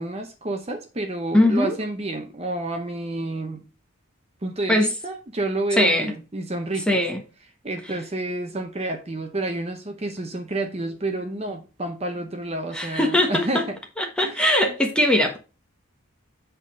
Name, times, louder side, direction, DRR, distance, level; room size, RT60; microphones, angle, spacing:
voice 1, 0.0-3.6 4.4-7.0 7.6-13.8 14.2-14.7, right 2 dB, 30° right, 0.8 m, -30 dB
voice 2, 1.3-1.7 4.7-4.9 5.8-6.1 6.9-7.2 12.7-13.6 14.0-15.4, left 1 dB, 5° left, 1.2 m, -20 dB
8.1 x 4.0 x 5.1 m
head